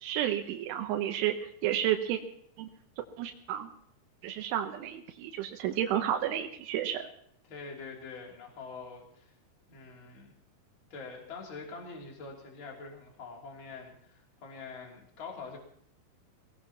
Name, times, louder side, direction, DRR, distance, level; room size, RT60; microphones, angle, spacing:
voice 1, 0.0-2.2 2.6-2.7 3.2-3.7 4.2-7.1, right 11 dB, 85° right, 5 dB, 3.4 m, -31 dB
voice 2, 7.5-9.3 9.7-10.3 10.9-15.6, left 4 dB, 30° left, -1 dB, 3.1 m, -45 dB
23.0 x 19.0 x 3.0 m, 0.69 s
omnidirectional pair, 5.4 m